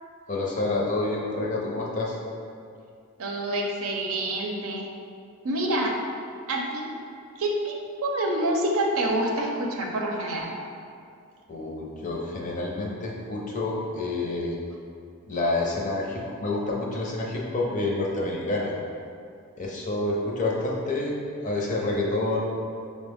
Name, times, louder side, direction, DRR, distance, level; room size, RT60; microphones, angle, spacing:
voice 1, 0.3-2.2 11.5-14.6 15.3-18.7 19.6-21.1 21.4-22.5, left 2 dB, 35° left, -3 dB, 0.5 m, -28 dB
voice 2, 3.2-4.9 5.4-5.9 6.5-6.9 7.4-7.7 8.0-10.5, right 1 dB, 70° right, 0 dB, 0.6 m, -27 dB
6.1 x 2.1 x 3.4 m, 2.4 s
head